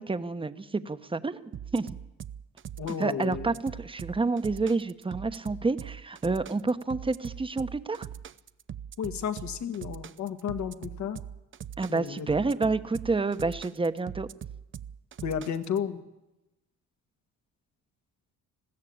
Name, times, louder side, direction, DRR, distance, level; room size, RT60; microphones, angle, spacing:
voice 1, 0.0-1.9 3.0-8.1 11.8-14.3, right 3 dB, 15° right, 11 dB, 1.0 m, -29 dB
sound 1, 1.5-15.8, right 9 dB, 40° right, 0.7 m, -41 dB
voice 2, 2.8-3.5 9.0-11.2 11.9-12.3 15.2-16.0, left 8 dB, 70° left, 9 dB, 1.8 m, -32 dB
21.0 x 15.0 x 8.7 m, 0.97 s
cardioid pair, 90°, 30 cm